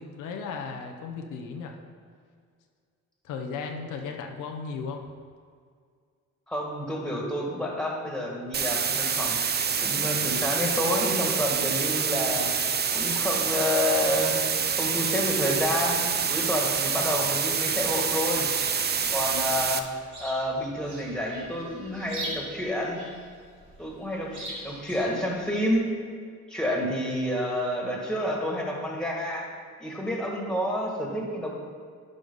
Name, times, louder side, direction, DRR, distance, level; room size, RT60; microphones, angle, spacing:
voice 1, 0.0-1.8 3.2-5.0, left 5 dB, 90° left, 3 dB, 0.9 m, -35 dB
voice 2, 6.5-9.4 9.8-12.5 12.9-14.4 14.8-18.5 19.1-19.8 20.2-23.0 23.8-26.0 26.5-29.5 29.8-31.5, left 1 dB, 5° left, -2 dB, 2.0 m, -29 dB
sound 1, 8.5-19.8, right 6 dB, 35° right, 0.6 m, -27 dB
Chirp tweet, 18.2-25.8, right 2 dB, 70° right, 2.2 m, -43 dB
11.0 x 5.2 x 3.9 m, 2.1 s
cardioid pair, 90°, 30 cm